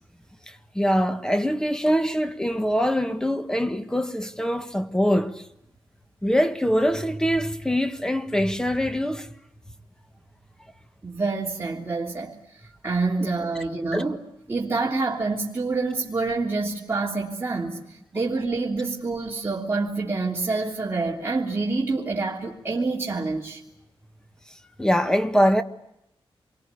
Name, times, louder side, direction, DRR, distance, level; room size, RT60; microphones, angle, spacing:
voice 1, 0.5-5.4 6.2-9.3 13.9-14.0 24.8-25.6, equal, 5° left, 1.5 m, -23 dB
voice 2, 11.0-12.4 12.8-14.2 14.5-23.6, right 3 dB, 25° right, 3.2 m, -27 dB
28.0 x 23.5 x 8.3 m
wide cardioid pair, 135°, 10 cm